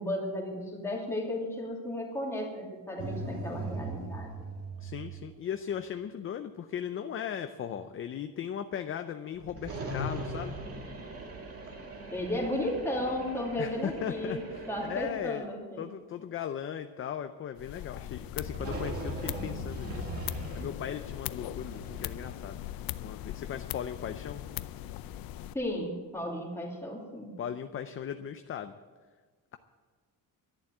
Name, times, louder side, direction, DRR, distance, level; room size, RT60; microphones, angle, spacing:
voice 1, 0.0-4.3 12.1-14.4 14.7-15.9 25.5-27.3, left 1 dB, 5° left, -2 dB, 2.7 m, -34 dB
sound 1, 3.0-5.3 9.3-15.3 18.4-22.3, right 2 dB, 40° right, 2.3 m, -40 dB
voice 2, 4.8-10.5 13.6-15.5 15.8-24.4 27.4-28.7, left 9 dB, 35° left, 8 dB, 0.6 m, -38 dB
sound 2, 17.6-25.5, left 13 dB, 85° left, 0.6 m, -40 dB
11.5 x 11.0 x 9.2 m, 1.4 s
cardioid pair, 175°, 34 cm